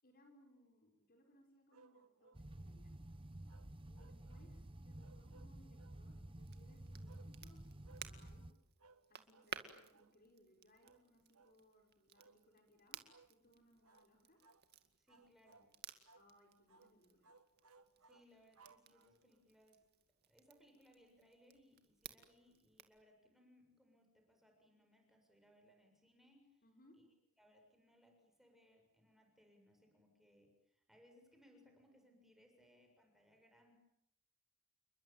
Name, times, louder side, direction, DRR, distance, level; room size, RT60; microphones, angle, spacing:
voice 1, 0.0-3.0 3.9-8.5 9.1-13.0 13.3-14.4 16.1-17.3 26.6-27.0, left 1 dB, 45° left, 4 dB, 5.8 m, -69 dB
sound 1, 1.7-2.5 3.5-4.5 5.0-6.0 7.1-7.3 7.8-8.1 8.8-9.1 9.3-9.6 9.9-10.2 10.8-11.0 11.3-11.6 12.1-12.4 13.0-13.3 13.8-14.1 14.4-14.7 15.1-15.7 16.0-16.3 16.7-16.9 17.2-19.4, right 4 dB, 80° right, 1.8 m, -66 dB
sound 2, 2.3-8.5, right 1 dB, 25° right, 1.0 m, -52 dB
Crackle, 6.4-23.0, right 8 dB, 50° right, 2.2 m, -57 dB
voice 2, 15.0-15.7 18.0-19.9 20.2-26.6 26.9-27.0 27.4-33.7, equal, ahead, 3 dB, 7.1 m, -69 dB
29.5 x 22.0 x 9.1 m, 0.79 s
head